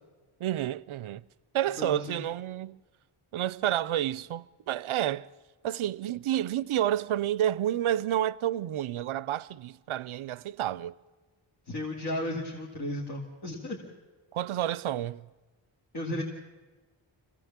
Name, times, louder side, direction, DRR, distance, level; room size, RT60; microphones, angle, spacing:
voice 1, 0.4-1.2 1.5-2.8 3.3-5.3 5.6-10.9 14.3-15.3, right 12 dB, 80° right, 0.6 m, -30 dB
voice 2, 1.8-2.2 11.7-13.8 15.9-16.2, left 1 dB, 50° left, 2.5 m, -34 dB
25.5 x 16.5 x 7.4 m
wide cardioid pair, 110°, 49 cm